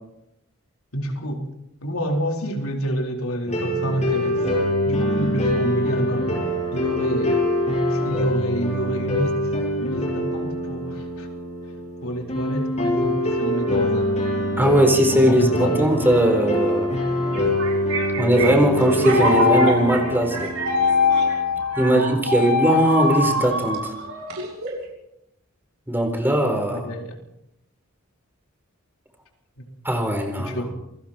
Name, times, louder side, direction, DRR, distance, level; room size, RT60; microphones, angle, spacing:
voice 1, 0.9-1.5 1.8-4.5 4.8-6.3 6.7-7.4 7.9-9.5 9.8-11.3 12.0-14.6 15.1-15.9 21.8-22.5 26.7-27.2 29.6-29.7 30.4-30.7, equal, 80° left, 1 dB, 4.3 m, -28 dB
sound 1, 3.5-21.5, left 1 dB, 35° left, 7.9 m, -24 dB
voice 2, 14.6-16.9 18.2-20.5 21.8-23.9 25.9-26.9 29.8-30.7, right 1 dB, 10° right, 4 dB, 4.2 m, -20 dB
sound 2, 17.3-24.9, left 2 dB, 70° right, 6.7 m, -23 dB
28.0 x 21.5 x 4.5 m, 0.80 s
head